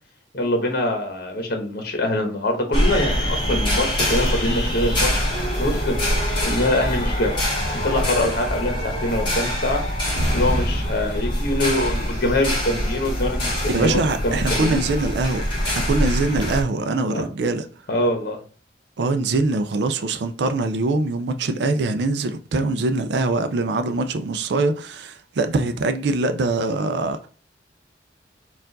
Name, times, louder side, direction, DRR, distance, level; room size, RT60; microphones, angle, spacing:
voice 1, 0.3-5.1 5.6-5.9 6.4-7.4 7.8-9.8 10.3-14.8 17.1-17.2 17.9-18.4, left 1 dB, 55° left, 1.0 m, -24 dB
sound 1, 2.7-16.6, equal, 30° left, 1.5 m, -24 dB
voice 2, 13.7-17.7 19.0-27.3, right 3 dB, 65° right, 0.4 m, -23 dB
4.5 x 2.4 x 3.8 m
head